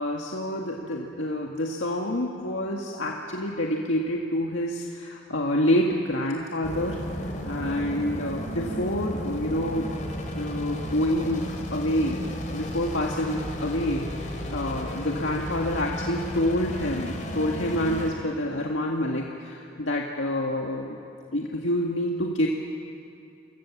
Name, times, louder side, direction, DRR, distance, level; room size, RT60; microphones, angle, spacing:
voice 1, 0.0-9.9 10.4-21.0 21.3-22.5, left 1 dB, 80° left, -1 dB, 2.0 m, -27 dB
sound 1, 6.6-18.1, equal, 40° left, 3.9 m, -33 dB
29.5 x 25.5 x 7.4 m, 2.5 s
head